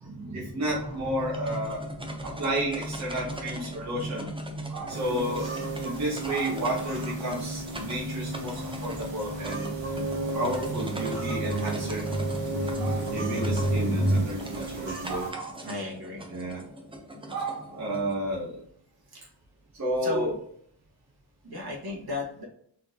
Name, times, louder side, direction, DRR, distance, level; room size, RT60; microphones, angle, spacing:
voice 1, 0.0-1.8 2.2-4.3 4.7-5.5 5.8-9.6 10.3-12.0 12.8-15.6 16.3-16.6 17.3-18.5 19.8-20.3, right 1 dB, 40° right, -6 dB, 1.1 m, -31 dB
sound 1, 0.7-14.2, equal, 55° left, 1.4 m, -34 dB
sound 2, 1.1-18.1, equal, 10° right, 0.5 m, -43 dB
sound 3, 4.9-15.3, right 3 dB, 85° right, 1.4 m, -35 dB
voice 2, 15.6-16.2 19.1-19.3 20.0-20.4 21.4-22.4, left 2 dB, 55° right, -3 dB, 1.7 m, -34 dB
4.4 x 4.0 x 2.8 m, 0.64 s
wide cardioid pair, 175°, 44 cm